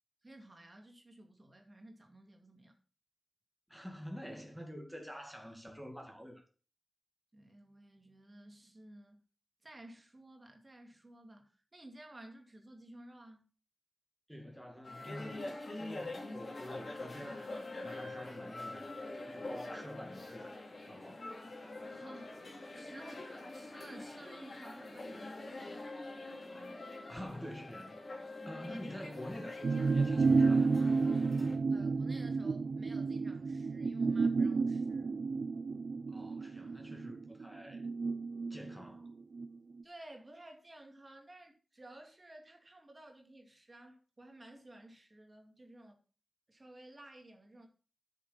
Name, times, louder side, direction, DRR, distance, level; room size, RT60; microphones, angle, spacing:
voice 1, 0.2-2.8 7.3-9.2 9.6-13.4 21.8-25.8 26.5-26.8 28.4-28.8 31.7-35.1 39.8-46.0 46.5-47.7, right 1 dB, 35° right, 2.2 m, -54 dB
voice 2, 3.7-6.4 14.3-17.5 17.8-21.2 27.1-28.0 28.4-30.8 36.1-37.9 38.5-39.1, equal, ahead, 2.1 m, -47 dB
sound 1, 14.8-31.6, left 2 dB, 60° left, 2.8 m, -45 dB
sound 2, 29.6-39.5 39.8-39.9, right 4 dB, 70° right, 0.4 m, -31 dB
7.9 x 6.7 x 5.7 m
wide cardioid pair, 95°, 0 cm